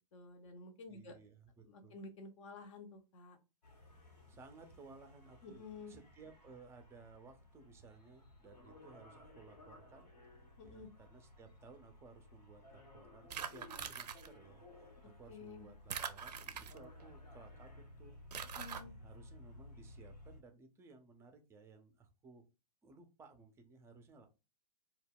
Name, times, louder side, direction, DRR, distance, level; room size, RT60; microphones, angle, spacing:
voice 1, 0.1-1.2 1.6-3.4 5.4-5.9 10.6-10.9 15.3-15.7 18.5-18.9, left 3 dB, 50° left, 6 dB, 0.6 m, -51 dB
voice 2, 0.9-2.0 4.3-10.1 10.6-22.4 22.8-24.3, right 4 dB, 15° right, 6 dB, 0.4 m, -59 dB
sound 1, 3.6-20.4, left 2 dB, 85° left, 1.0 m, -57 dB
sound 2, 13.3-14.3 15.9-17.0 18.3-18.8, right 7 dB, 75° right, 0.4 m, -43 dB
2.3 x 2.0 x 3.5 m, 0.28 s
figure-of-eight pair, 110°, 21 cm